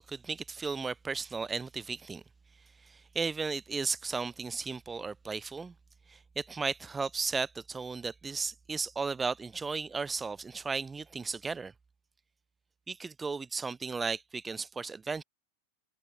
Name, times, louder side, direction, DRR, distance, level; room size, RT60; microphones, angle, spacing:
voice 1, 0.0-2.2 2.9-5.7 6.1-11.7 12.9-15.2, right 4 dB, 15° right, 0.6 m, -35 dB
open air
figure-of-eight pair, 90°, 0 cm